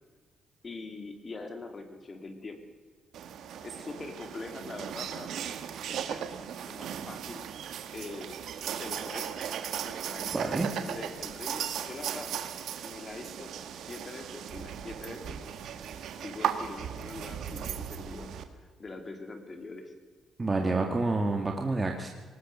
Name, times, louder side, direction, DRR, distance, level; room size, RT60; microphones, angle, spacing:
voice 1, 0.6-2.6 3.6-5.3 5.9-7.5 7.9-8.4 8.7-9.4 9.8-12.3 12.8-15.4 16.2-19.9, left 3 dB, 35° left, 6 dB, 3.3 m, -43 dB
sound 1, 3.1-18.4, right 9 dB, 75° right, 1.7 m, -37 dB
voice 2, 10.3-10.7 20.4-22.1, right 3 dB, 25° right, 2 dB, 2.0 m, -28 dB
20.5 x 19.0 x 6.9 m, 1.5 s
cardioid pair, 90°, 0 cm